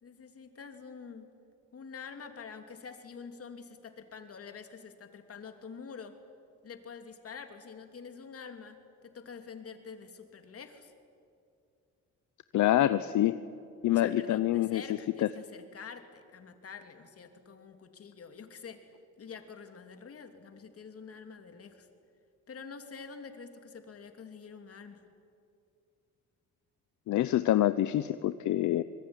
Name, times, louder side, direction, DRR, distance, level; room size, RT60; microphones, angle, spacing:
voice 1, 0.0-1.3 1.7-6.2 6.6-8.8 9.0-10.9 13.9-21.9 22.5-25.0, left 5 dB, 50° left, 6 dB, 3.2 m, -47 dB
voice 2, 12.5-13.4 13.8-14.8 15.2-15.3 27.1-28.8, left 13 dB, 75° left, 13 dB, 0.8 m, -26 dB
25.0 x 21.0 x 9.9 m, 2.4 s
cardioid pair, 90°, 30 cm